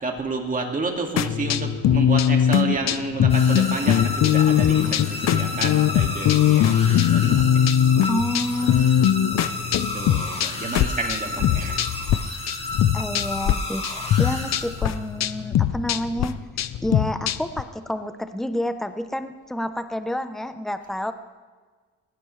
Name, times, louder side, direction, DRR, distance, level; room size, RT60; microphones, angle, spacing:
voice 1, 0.0-7.3 9.4-11.8, right 3 dB, 25° right, 2 dB, 2.2 m, -30 dB
sound 1, 1.2-12.2 12.5-13.5 13.8-17.6, left 10 dB, 60° left, 0.7 m, -21 dB
sound 2, 3.3-15.2, left 2 dB, 20° left, 2.4 m, -32 dB
voice 2, 8.0-8.9 12.9-16.4 16.8-21.1, left 1 dB, ahead, 9 dB, 0.7 m, -29 dB
20.0 x 17.5 x 3.3 m, 1.5 s
cardioid pair, 130°, 30 cm